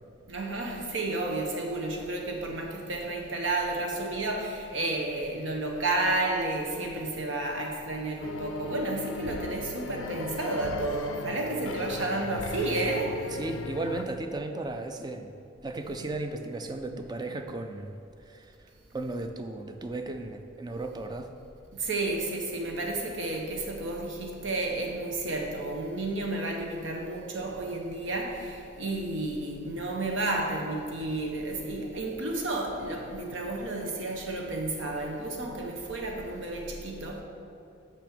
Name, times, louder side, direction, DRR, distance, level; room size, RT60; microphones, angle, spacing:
voice 1, 0.3-13.4 21.7-37.2, right 2 dB, 75° right, 1 dB, 1.0 m, -31 dB
sound 1, 8.2-14.0, left 4 dB, 90° left, 0.4 m, -38 dB
voice 2, 13.3-15.3 15.6-18.0 18.3-21.3, right 2 dB, 20° right, 6 dB, 0.4 m, -35 dB
6.0 x 6.0 x 5.1 m, 2.6 s
head